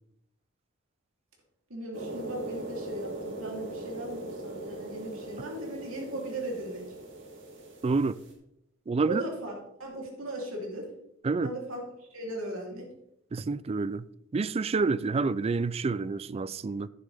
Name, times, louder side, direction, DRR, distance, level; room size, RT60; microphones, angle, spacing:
voice 1, 1.7-6.8 9.1-9.5 9.8-10.9 11.4-11.8 12.1-12.9, right 1 dB, 85° right, 3.5 m, -37 dB
sound 1, 1.9-8.3, right 2 dB, 65° right, 2.5 m, -40 dB
voice 2, 7.8-8.2 8.9-9.2 11.2-11.5 13.3-14.1 14.3-16.9, right 4 dB, 30° right, 0.3 m, -28 dB
11.5 x 9.3 x 3.5 m
head